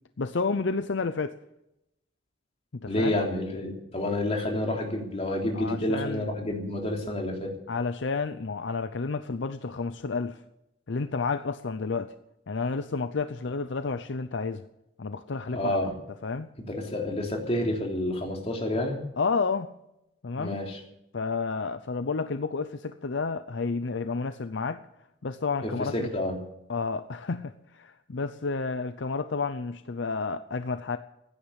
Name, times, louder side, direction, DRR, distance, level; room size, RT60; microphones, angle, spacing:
voice 1, 0.2-1.4 2.7-3.2 5.5-6.2 7.7-10.4 10.9-12.2 12.5-14.6 15.0-15.8 16.2-16.5 19.2-19.7 20.2-20.6 21.1-24.8 25.2-26.1 26.7-31.0, left 4 dB, 65° left, 11 dB, 0.6 m, -30 dB
voice 2, 2.9-7.6 15.5-15.9 16.7-19.0 20.4-20.8 25.6-26.4, left 1 dB, 30° left, 0 dB, 3.5 m, -29 dB
16.0 x 10.0 x 8.1 m, 0.85 s
head